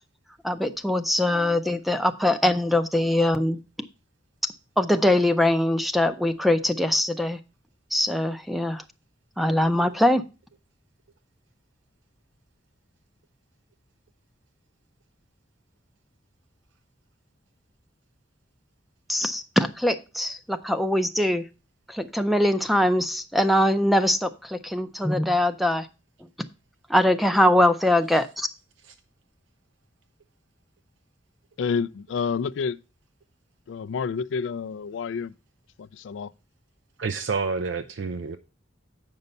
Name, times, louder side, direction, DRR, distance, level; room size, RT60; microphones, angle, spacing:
voice 1, 0.4-3.6 4.8-7.4 7.9-8.8 9.4-10.2 19.1-21.4 21.9-25.9 26.9-28.5, left 1 dB, ahead, 0.5 m, -22 dB
voice 2, 31.6-32.8 33.7-35.3 35.8-36.3, left 5 dB, 75° left, 0.3 m, -29 dB
voice 3, 37.0-38.4, right 4 dB, 75° right, 0.5 m, -28 dB
8.1 x 5.4 x 5.3 m
head